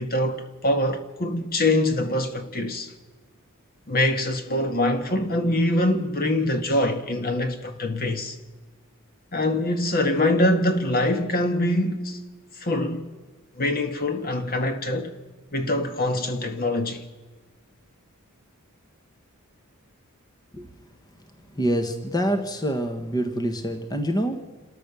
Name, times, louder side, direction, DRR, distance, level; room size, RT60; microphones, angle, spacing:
voice 1, 0.0-2.9 3.9-8.4 9.3-12.2 12.6-13.1 13.6-15.1 15.5-17.0, left 1 dB, 45° left, 1.5 m, -24 dB
voice 2, 21.5-24.4, equal, 20° left, 1.3 m, -26 dB
27.5 x 13.5 x 6.9 m
head